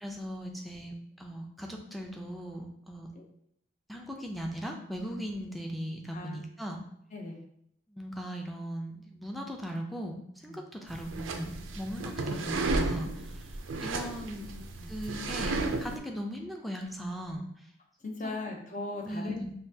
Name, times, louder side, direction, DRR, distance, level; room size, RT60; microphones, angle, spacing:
voice 1, 0.0-3.1 3.9-6.8 7.9-13.5 13.8-14.5 14.9-17.4 18.2-18.5 19.1-19.5, equal, ahead, 1 dB, 0.5 m, -38 dB
voice 2, 6.1-6.4 7.1-7.4 10.5-10.6 12.3-12.5 13.6-13.7 14.4-14.9 18.0-19.4, left 2 dB, 40° left, 1 dB, 0.7 m, -39 dB
sound 1, 10.9-16.0, right 2 dB, 90° right, 0.5 m, -33 dB
5.5 x 2.4 x 2.7 m, 0.72 s
head